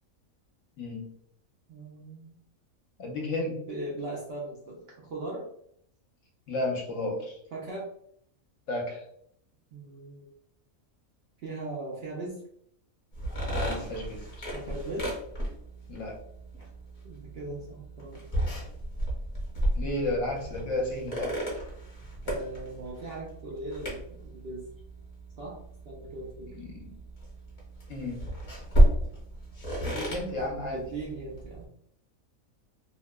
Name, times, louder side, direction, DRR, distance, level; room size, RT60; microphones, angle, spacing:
voice 1, 0.8-1.1 3.0-3.6 6.5-7.4 8.7-9.0 13.5-14.5 15.9-16.2 19.8-21.4 26.5-26.9 27.9-28.2 29.8-30.8, left 2 dB, 70° left, 0 dB, 1.0 m, -33 dB
voice 2, 1.7-2.3 3.6-5.5 7.5-7.9 9.7-10.3 11.4-12.4 14.5-15.1 16.6-16.7 17.0-18.2 22.2-24.6 25.4-25.6 25.9-26.5 30.7-31.7, right 2 dB, 65° right, -3 dB, 0.6 m, -39 dB
sound 1, 13.1-31.7, right 1 dB, 35° left, 0.7 m, -32 dB
2.8 x 2.0 x 2.2 m, 0.70 s
omnidirectional pair, 1.5 m